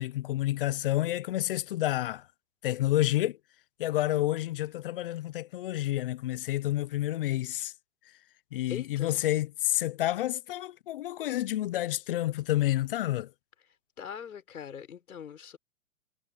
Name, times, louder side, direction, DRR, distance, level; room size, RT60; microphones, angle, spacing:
voice 1, 0.0-2.3 2.6-3.4 3.8-7.7 8.5-13.3, left 14 dB, 40° left, 0.6 m, -29 dB
voice 2, 8.7-9.2 14.0-15.6, left 8 dB, 75° left, 5.6 m, -42 dB
hypercardioid pair, 140°, 43 cm